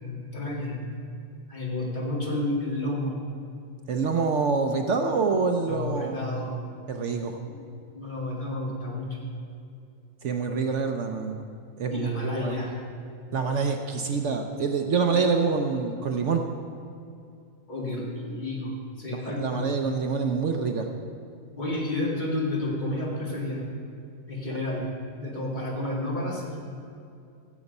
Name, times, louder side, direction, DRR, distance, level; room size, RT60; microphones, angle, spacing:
voice 1, 0.0-0.8 1.5-3.2 5.6-6.5 7.9-9.2 11.9-12.8 17.7-19.7 21.6-23.6 24.3-24.9 25.1-26.5, left 1 dB, 35° left, -4 dB, 2.3 m, -30 dB
voice 2, 3.9-6.2 6.9-7.4 10.2-11.4 11.8-12.1 12.4-12.5 13.3-16.4 19.1-20.9, right 4 dB, 65° right, 5 dB, 1.0 m, -26 dB
15.5 x 7.0 x 5.3 m, 2.6 s
omnidirectional pair, 1.5 m